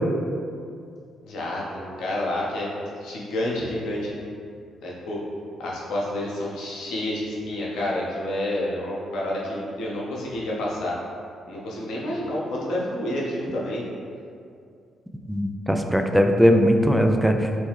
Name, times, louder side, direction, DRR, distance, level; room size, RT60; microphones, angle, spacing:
voice 1, 1.2-2.7 3.0-4.1 4.8-5.2 5.6-10.9 11.5-13.8, left 1 dB, 60° left, -5 dB, 0.7 m, -29 dB
voice 2, 15.3-17.5, equal, ahead, 4 dB, 0.3 m, -19 dB
3.1 x 3.1 x 3.3 m, 2.4 s
figure-of-eight pair, 40°, 0 cm